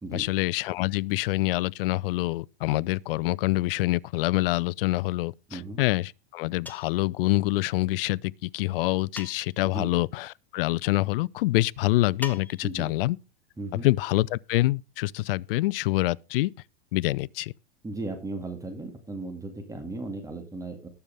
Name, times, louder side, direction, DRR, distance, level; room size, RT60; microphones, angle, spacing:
voice 1, 0.1-13.2 13.7-16.5 16.9-17.5, left 19 dB, 60° left, 0.5 m, -26 dB
sound 1, 6.7-7.1 9.2-9.7 12.2-12.8, left 2 dB, 5° left, 1.0 m, -40 dB
voice 2, 13.6-13.9 17.8-20.9, right 2 dB, 10° right, 2.1 m, -36 dB
19.5 x 6.9 x 3.5 m
hypercardioid pair, 120°, 31 cm